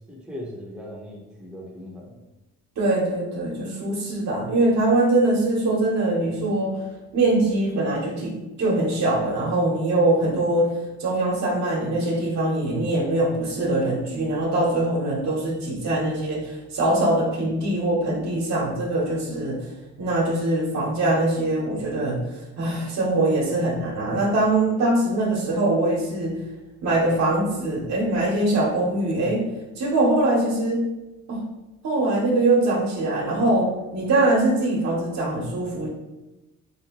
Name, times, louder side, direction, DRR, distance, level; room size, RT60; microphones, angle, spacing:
voice 1, 0.1-2.2, left 1 dB, 5° right, -3 dB, 0.8 m, -38 dB
voice 2, 2.8-6.8 7.1-10.7 11.0-19.6 20.0-22.2 22.6-26.4 26.8-29.4 29.8-30.8 31.3-31.4 31.8-35.9, right 2 dB, 65° right, -2 dB, 1.1 m, -22 dB
3.3 x 2.9 x 3.0 m, 1.0 s
cardioid pair, 90°, 30 cm